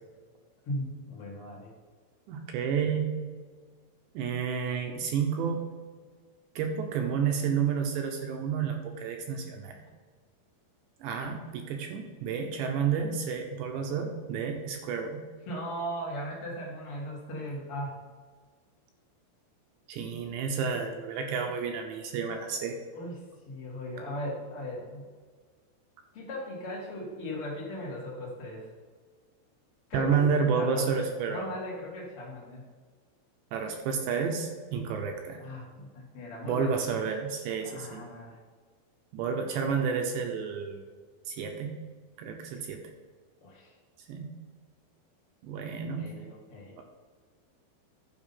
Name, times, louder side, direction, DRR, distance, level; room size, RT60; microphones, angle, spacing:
voice 1, 0.6-1.7 15.4-17.9 22.9-25.1 26.1-28.7 29.9-30.3 30.5-32.6 35.4-36.7 37.6-38.4 39.6-39.9 43.4-43.7 46.0-46.8, equal, 85° left, -4 dB, 1.2 m, -38 dB
voice 2, 2.3-3.2 4.1-5.6 6.6-9.8 11.0-15.2 19.9-22.8 29.9-31.6 33.5-35.4 36.4-38.0 39.1-40.8 41.3-41.8 42.2-42.8 44.1-44.3 45.4-46.1 46.8-46.9, right 6 dB, 80° right, 3 dB, 2.6 m, -30 dB
11.5 x 5.4 x 5.6 m, 1.5 s
omnidirectional pair, 6.0 m